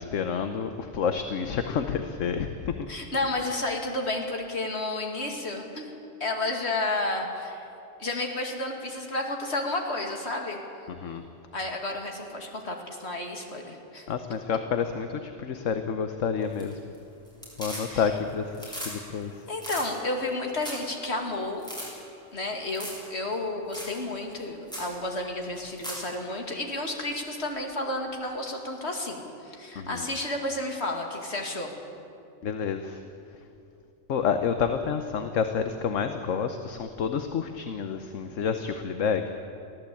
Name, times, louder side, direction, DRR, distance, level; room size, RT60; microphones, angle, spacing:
voice 1, 0.0-2.8 11.0-11.2 14.1-16.7 17.6-19.3 29.8-30.0 32.4-33.0 34.1-39.2, left 6 dB, 75° left, 8 dB, 1.3 m, -29 dB
voice 2, 2.9-5.9 6.2-7.6 8.0-10.6 11.5-14.1 17.7-18.2 19.5-21.7 22.3-31.7, left 2 dB, 55° left, 2 dB, 2.6 m, -31 dB
sound 1, 16.4-17.0 17.3-18.2 18.5-18.9 19.2-19.3 19.6-19.9 20.3-20.4 20.6-20.9 21.2-21.3 21.6-21.9 22.7-23.1 23.3-23.4 23.7-24.0 24.3-24.4 24.7-24.9 25.5-26.1 28.2-28.3, equal, 5° left, 6.8 m, -38 dB
23.5 x 15.5 x 8.5 m, 2.6 s
omnidirectional pair, 1.3 m